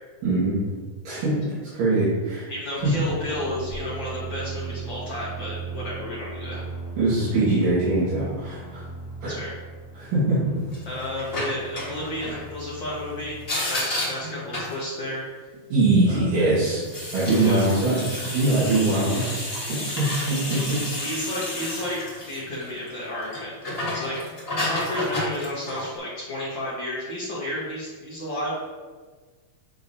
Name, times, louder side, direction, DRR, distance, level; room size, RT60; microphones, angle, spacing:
voice 1, 0.2-0.6 1.0-2.5 2.8-2.9 7.0-8.9 9.2-9.3 9.9-10.4 15.7-16.8 17.1-19.5 20.0-20.8, right 2 dB, 80° right, -10 dB, 3.3 m, -22 dB
voice 2, 2.5-6.6 9.3-9.5 10.9-13.4 13.7-15.2 16.1-16.2 17.3-17.7 20.9-23.6 23.9-24.2 24.6-28.5, left 1 dB, 70° left, -7 dB, 1.1 m, -32 dB
sound 1, 2.8-13.5, right 3 dB, 35° left, 1.3 m, -38 dB
sound 2, 10.7-12.5 13.4-14.8 16.7-22.9 23.2-26.0, left 1 dB, 85° left, 0.5 m, -31 dB
8.3 x 5.0 x 2.7 m, 1.4 s
omnidirectional pair, 3.8 m